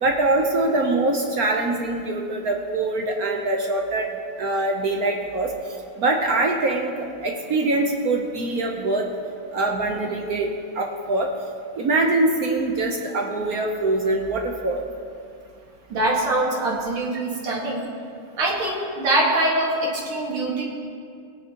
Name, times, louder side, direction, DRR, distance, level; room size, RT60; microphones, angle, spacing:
voice 1, 0.0-4.1 4.4-5.5 6.0-9.0 9.5-10.5 10.7-11.3 11.7-14.8, right 2 dB, 60° right, 2 dB, 1.1 m, -23 dB
voice 2, 15.9-17.9 18.4-20.6, right 1 dB, 80° right, -3 dB, 2.8 m, -23 dB
19.0 x 9.8 x 2.9 m, 2.3 s
omnidirectional pair, 2.3 m